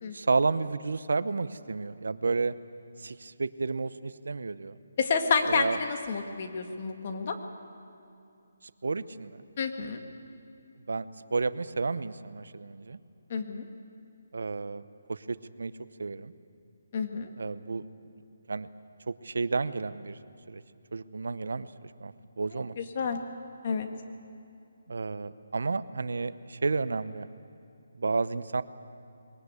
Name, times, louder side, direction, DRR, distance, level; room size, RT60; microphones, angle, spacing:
voice 1, 0.1-2.5 3.0-4.8 5.5-5.8 8.8-9.4 10.9-13.0 14.3-14.8 15.1-15.7 16.0-16.3 17.4-17.8 18.5-18.7 19.1-20.2 20.5-20.6 20.9-21.7 22.0-22.7 24.9-27.3 27.9-28.6, right 4 dB, 75° right, 14 dB, 0.8 m, -31 dB
voice 2, 5.0-7.4 9.6-10.0 13.3-13.7 16.9-17.3 22.5-23.2 23.6-23.9, left 5 dB, 40° left, 5 dB, 1.8 m, -29 dB
21.5 x 19.5 x 8.3 m, 2.7 s
hypercardioid pair, 165°, 0 cm